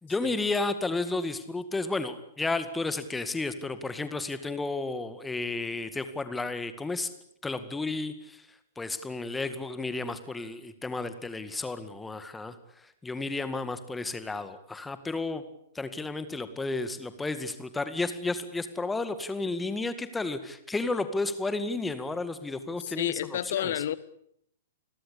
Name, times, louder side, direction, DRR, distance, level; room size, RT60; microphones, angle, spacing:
voice 1, 0.0-7.1 7.4-8.4 8.8-12.6 13.0-15.4 15.8-23.1 23.6-23.7, left 3 dB, 10° left, 11 dB, 2.0 m, -32 dB
voice 2, 22.8-24.0, left 11 dB, 50° left, 18 dB, 1.4 m, -30 dB
30.0 x 22.0 x 8.6 m, 0.71 s
figure-of-eight pair, 110°, 0 cm